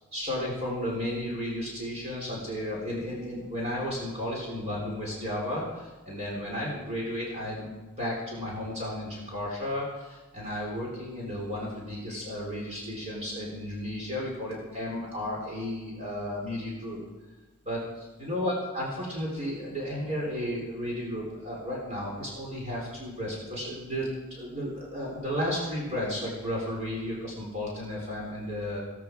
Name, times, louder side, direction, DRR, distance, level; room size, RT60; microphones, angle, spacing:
voice 1, 0.1-7.7 8.0-17.0 17.6-28.8, left 1 dB, 30° right, -3 dB, 4.0 m, -33 dB
16.5 x 15.5 x 4.7 m, 1.2 s
head